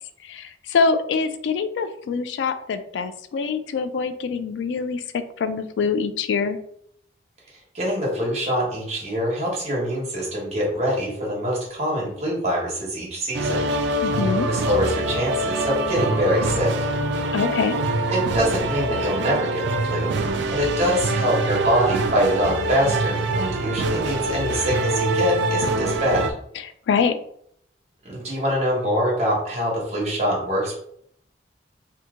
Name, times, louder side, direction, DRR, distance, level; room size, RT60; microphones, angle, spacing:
voice 1, 0.2-6.6 14.0-14.5 17.3-17.7 26.5-27.1, left 5 dB, 80° left, 10 dB, 0.3 m, -24 dB
voice 2, 7.7-13.6 14.5-16.7 18.1-20.1 20.5-26.3 28.0-30.8, equal, 40° right, -4 dB, 1.3 m, -24 dB
sound 1, 13.3-26.3, right 2 dB, 75° right, 0.4 m, -24 dB
2.8 x 2.5 x 3.6 m, 0.68 s
head